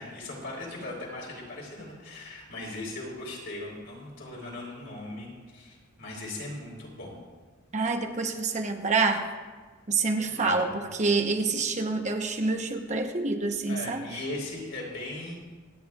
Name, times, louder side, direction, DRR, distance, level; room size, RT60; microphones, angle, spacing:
voice 1, 0.0-7.2 10.3-10.8 13.6-15.4, left 2 dB, 65° left, -3 dB, 4.0 m, -39 dB
voice 2, 7.7-9.2 9.9-14.0, right 3 dB, 35° right, 4 dB, 0.9 m, -27 dB
26.0 x 9.3 x 2.4 m, 1.4 s
head